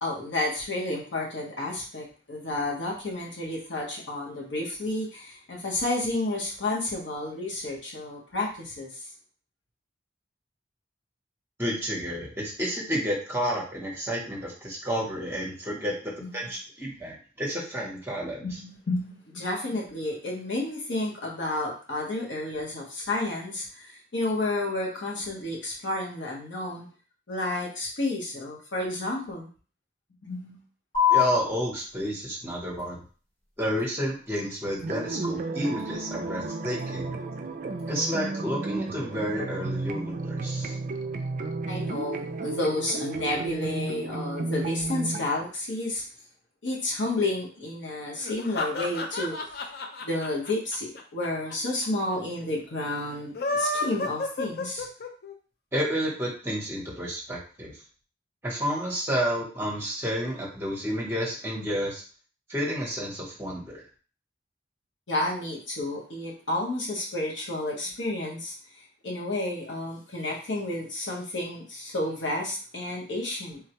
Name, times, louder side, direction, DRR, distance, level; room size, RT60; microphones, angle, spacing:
voice 1, 0.0-9.1 16.2-16.5 18.4-26.9 27.3-29.5 30.2-30.6 39.7-39.9 41.7-46.0 46.6-49.5 50.0-54.9 65.1-73.6, left 2 dB, 80° left, -3 dB, 1.0 m, -31 dB
voice 2, 11.6-18.5 31.1-33.0 33.6-37.1 37.9-40.8 55.7-57.7 58.4-62.0 62.5-63.8, equal, 15° right, -3 dB, 0.8 m, -30 dB
sound 1, 30.9-37.9, left 10 dB, 30° left, 1.0 m, -32 dB
sound 2, 34.8-45.2, right 3 dB, 45° right, 0.3 m, -33 dB
sound 3, 48.2-51.5 51.8-51.9 52.1-52.2 53.2-55.3, left 2 dB, 55° left, 0.4 m, -31 dB
3.6 x 2.2 x 2.9 m, 0.39 s
head